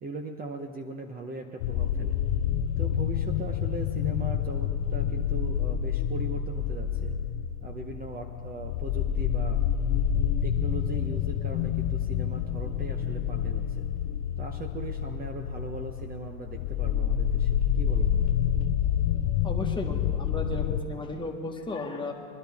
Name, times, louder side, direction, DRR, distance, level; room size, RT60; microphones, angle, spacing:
voice 1, 0.0-2.2 2.8-7.1 7.6-9.6 10.4-13.9 14.4-18.2, right 3 dB, 20° right, 3 dB, 0.9 m, -39 dB
sound 1, 1.6-20.8, left 9 dB, 65° left, 0.8 m, -28 dB
voice 2, 19.4-22.1, left 2 dB, 10° left, 1 dB, 1.5 m, -34 dB
23.0 x 11.5 x 3.6 m, 2.2 s
hypercardioid pair, 105°, 40 cm